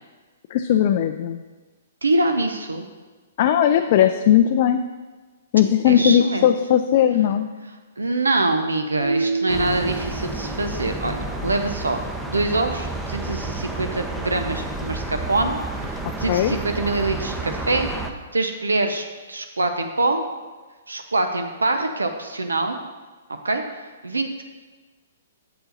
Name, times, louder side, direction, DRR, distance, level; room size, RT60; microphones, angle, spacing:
voice 1, 0.5-1.4 3.4-4.8 5.5-7.5 16.3-16.6, left 10 dB, 45° left, 7 dB, 0.4 m, -18 dB
voice 2, 2.0-2.9 5.9-6.5 8.0-17.9 18.3-20.2 20.9-22.8 23.4-24.4, right 2 dB, 80° right, 6 dB, 0.6 m, -24 dB
sound 1, 9.0-11.2, right 3 dB, 45° right, 1.6 m, -28 dB
sound 2, 9.5-18.1, right 2 dB, 5° right, 0.7 m, -30 dB
7.9 x 6.7 x 4.0 m, 1.3 s
figure-of-eight pair, 115°, 0 cm